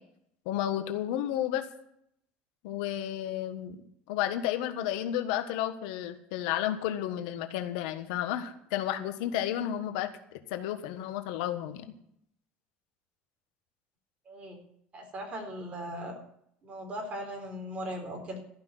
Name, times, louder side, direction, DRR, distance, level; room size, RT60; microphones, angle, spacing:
voice 1, 0.4-1.6 2.6-3.8 4.1-11.8, left 11 dB, 90° left, 8 dB, 1.5 m, -32 dB
voice 2, 14.2-14.6 14.9-16.2 16.6-18.4, equal, 30° right, 2 dB, 4.2 m, -38 dB
14.0 x 6.0 x 9.2 m, 0.71 s
cardioid pair, 130°, 4 cm